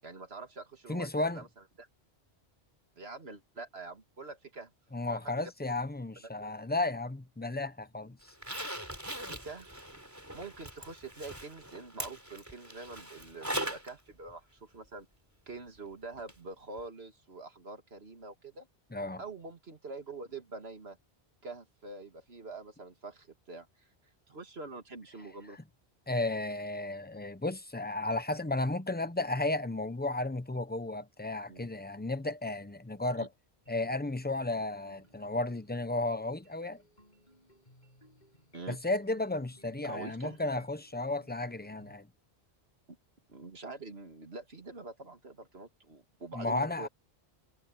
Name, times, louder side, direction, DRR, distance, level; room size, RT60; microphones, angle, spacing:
voice 1, 0.0-1.5 1.8-1.9 3.0-4.7 5.1-5.5 9.3-9.8 10.3-15.1 15.5-18.7 19.2-21.0 21.4-23.9 24.3-25.6 31.5-31.7 33.2-33.3 38.5-38.8 39.8-40.6 43.3-46.9, right 3 dB, 70° right, 2.6 m, -45 dB
voice 2, 0.9-1.4 4.9-8.2 18.9-19.2 26.1-33.3 33.7-36.8 38.7-42.1 46.3-46.9, left 2 dB, 10° left, 0.8 m, -33 dB
Zipper (clothing), 8.3-13.9 14.3-14.4 16.3-16.4 16.8-16.9, right 1 dB, 15° right, 4.3 m, -40 dB
sound 1, 33.7-41.9, equal, 45° left, 7.6 m, -62 dB
omnidirectional pair, 1.1 m